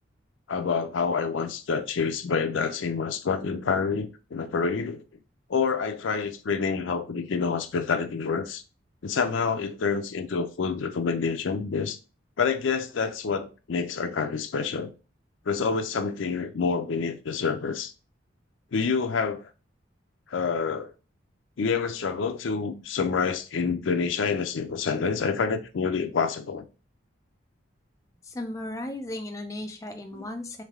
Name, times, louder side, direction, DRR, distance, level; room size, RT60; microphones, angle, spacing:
voice 1, 0.5-5.0 5.5-8.6 9.0-12.0 12.4-14.9 15.5-17.9 18.7-19.5 20.3-20.9 21.6-26.6 30.1-30.3, left 5 dB, 80° left, 0.5 m, -27 dB
voice 2, 28.3-30.6, left 1 dB, 15° left, 0.3 m, -35 dB
3.3 x 3.2 x 3.5 m
head